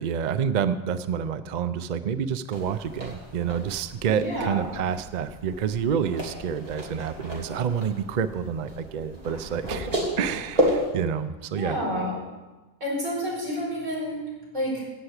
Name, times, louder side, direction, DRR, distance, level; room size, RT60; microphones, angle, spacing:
voice 1, 0.0-11.8, right 7 dB, 75° right, 12 dB, 0.4 m, -28 dB
sound 1, 2.5-10.9, equal, 25° right, 2.8 m, -32 dB
voice 2, 4.1-4.6 11.5-12.1 12.8-14.2 14.5-14.9, equal, 55° right, -4 dB, 5.6 m, -29 dB
17.0 x 5.8 x 8.1 m, 1.1 s
omnidirectional pair, 1.5 m